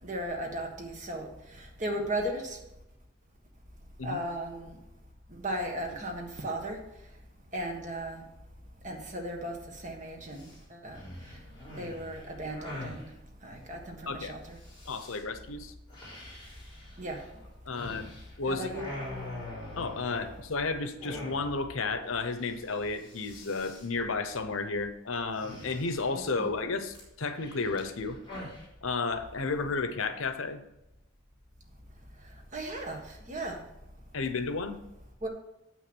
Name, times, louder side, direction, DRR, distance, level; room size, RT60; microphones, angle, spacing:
voice 1, 0.0-2.6 4.0-4.8 5.3-6.8 7.5-8.2 8.8-11.4 11.7-13.1 13.4-14.6 17.0-17.3 18.4-18.9 26.2-26.5 32.2-33.6 35.2-35.3, right 1 dB, 35° right, 2 dB, 1.6 m, -36 dB
sound 1, 10.3-10.6 10.9-13.1 14.6-15.2 15.9-18.3 18.6-20.6 21.0-21.7 22.0-22.1 22.4-22.7 22.9-23.9 25.3-26.3 26.9-28.7, left 1 dB, 20° left, 3.8 m, -44 dB
voice 2, 14.9-15.7 17.7-18.1 18.4-18.7 19.8-28.2 28.8-30.6 34.1-34.8, left 4 dB, 80° left, 10 dB, 0.8 m, -32 dB
8.0 x 6.3 x 6.1 m, 0.88 s
head